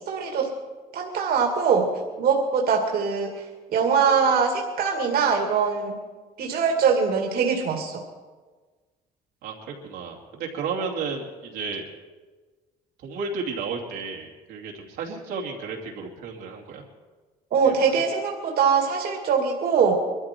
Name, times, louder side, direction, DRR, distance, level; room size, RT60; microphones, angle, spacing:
voice 1, 0.1-0.5 0.9-1.9 2.2-3.4 3.7-5.9 6.4-8.0 17.5-19.9, right 6 dB, 65° right, 1 dB, 2.3 m, -22 dB
voice 2, 9.8-11.9 13.0-16.8 17.6-17.9, right 4 dB, 85° right, -2 dB, 2.7 m, -33 dB
22.5 x 13.5 x 4.5 m, 1.4 s
cardioid pair, 110°, 17 cm